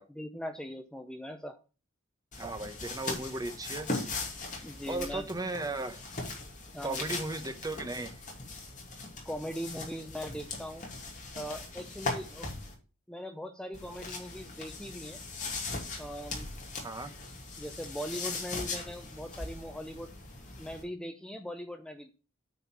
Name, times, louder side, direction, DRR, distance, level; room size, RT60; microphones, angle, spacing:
voice 1, 0.1-1.6 4.6-5.2 6.7-7.0 9.2-10.9 11.3-12.7 13.1-15.2 16.0-16.6 17.6-20.1 20.6-22.1, equal, 5° left, 6 dB, 0.6 m, -40 dB
sound 1, 2.3-12.7 13.7-20.8, left 3 dB, 40° left, 2.7 m, -40 dB
voice 2, 2.4-3.9 4.9-6.0 6.8-8.1 16.8-17.1, right 2 dB, 20° right, 8 dB, 1.0 m, -36 dB
9.2 x 4.3 x 7.3 m, 0.34 s
head